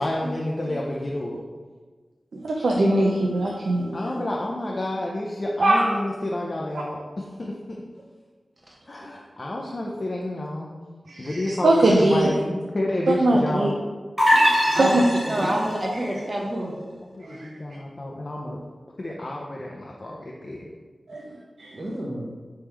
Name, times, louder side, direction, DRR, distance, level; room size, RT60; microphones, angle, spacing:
voice 1, 0.0-1.4 3.9-7.5 8.9-10.7 11.2-13.7 14.8-15.0 15.3-15.6 17.0-18.6 19.0-20.7, left 1 dB, 40° left, -2 dB, 0.4 m, -29 dB
voice 2, 2.3-4.0 5.6-5.9 11.1-12.3 13.1-13.7 14.3-14.5 14.8-15.0 17.2-17.5 21.1-21.2 21.6-21.7, right 2 dB, 80° right, -1 dB, 0.4 m, -21 dB
sound 1, 14.2-15.8, equal, 5° right, 1.3 m, -21 dB
voice 3, 15.3-16.7 21.7-22.4, right 1 dB, 35° right, -1 dB, 0.8 m, -27 dB
3.5 x 3.1 x 4.5 m, 1.4 s
wide cardioid pair, 105°, 0 cm